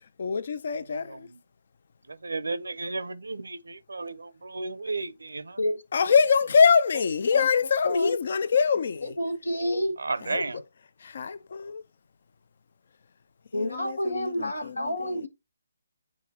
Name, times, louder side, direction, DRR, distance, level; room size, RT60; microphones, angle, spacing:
voice 1, 0.2-1.3 5.9-9.1 10.2-10.4 11.0-11.8 13.5-15.2, left 6 dB, 55° left, 0.5 m, -24 dB
voice 2, 1.1-1.4 2.1-5.6 10.0-10.6, right 3 dB, 80° right, 0.6 m, -33 dB
voice 3, 9.0-9.9 13.5-15.3, left 1 dB, 85° left, 1.8 m, -29 dB
8.6 x 3.9 x 2.8 m
figure-of-eight pair, 145°, 0 cm